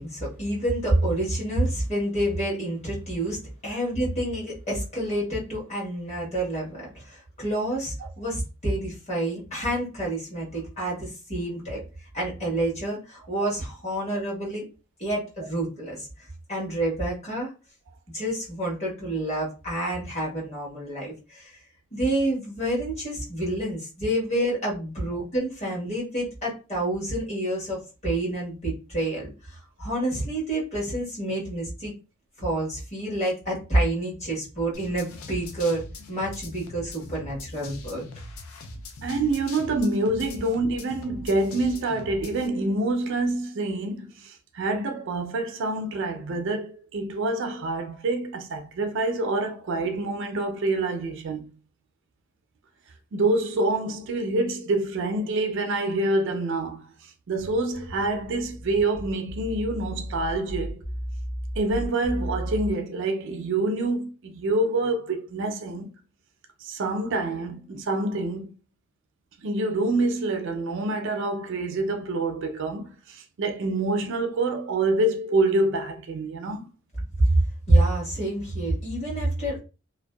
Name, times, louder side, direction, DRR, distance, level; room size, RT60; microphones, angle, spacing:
voice 1, 0.0-3.4 3.6-11.8 12.1-14.6 15.0-16.1 16.5-17.5 18.1-21.6 21.9-31.9 32.4-38.0 77.2-77.4 77.7-79.6, right 1 dB, 30° left, 1.2 m, -28 dB
sound 1, 34.7-42.5, left 2 dB, 75° left, 0.4 m, -41 dB
voice 2, 39.0-51.5 53.1-60.9 61.6-65.9 66.6-68.5 69.4-76.7, right 2 dB, 60° right, 0.4 m, -26 dB
sound 2, 57.4-62.7, equal, 10° left, 0.4 m, -34 dB
2.6 x 2.1 x 2.2 m
head